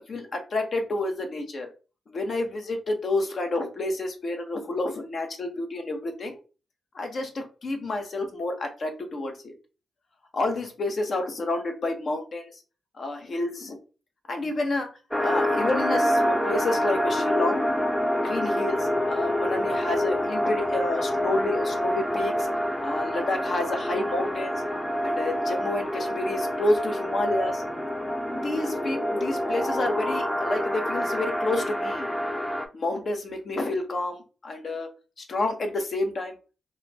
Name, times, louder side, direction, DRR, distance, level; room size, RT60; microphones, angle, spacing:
voice 1, 0.1-1.7 2.1-6.4 6.9-9.5 10.3-12.5 13.0-13.8 14.3-14.9 15.2-17.6 18.2-22.5 22.8-24.6 25.0-27.6 28.3-32.1 32.7-34.9 35.2-36.3, left 2 dB, 60° left, 5 dB, 0.7 m, -29 dB
sound 1, 15.1-32.7, equal, ahead, 0.4 m, -27 dB
2.3 x 2.0 x 3.2 m, 0.34 s
cardioid pair, 55°, 0 cm